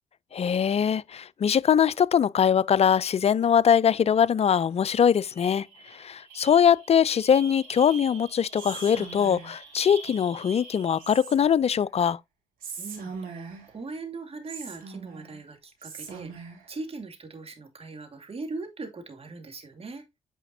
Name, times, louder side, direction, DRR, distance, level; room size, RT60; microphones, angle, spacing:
voice 1, 0.3-12.2, left 8 dB, 45° left, 0.4 m, -22 dB
sound 1, 4.5-4.7 5.0-11.4, right 4 dB, 85° right, 2.6 m, -45 dB
Whispering, 8.6-9.7 11.0-11.7 12.6-13.8 14.5-15.4 15.8-16.7, right 5 dB, 70° right, 2.8 m, -41 dB
voice 2, 12.8-20.0, right 3 dB, 40° right, 2.4 m, -40 dB
9.2 x 4.9 x 2.7 m
hypercardioid pair, 45°, 15 cm